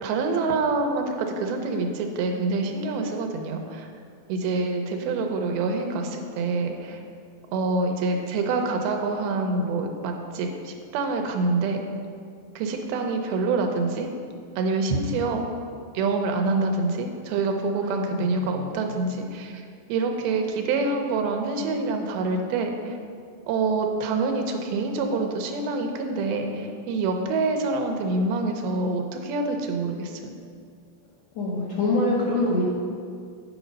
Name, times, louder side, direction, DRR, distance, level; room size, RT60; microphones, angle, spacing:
voice 1, 0.0-3.9 4.3-7.0 7.5-11.8 12.6-14.1 14.6-15.4 15.9-19.5 19.9-22.7 23.5-30.3, right 3 dB, 85° right, 4 dB, 2.6 m, -26 dB
voice 2, 17.8-18.7 31.3-32.6, left 2 dB, 70° left, -5 dB, 1.7 m, -25 dB
9.4 x 5.0 x 5.2 m, 2.2 s
omnidirectional pair, 4.3 m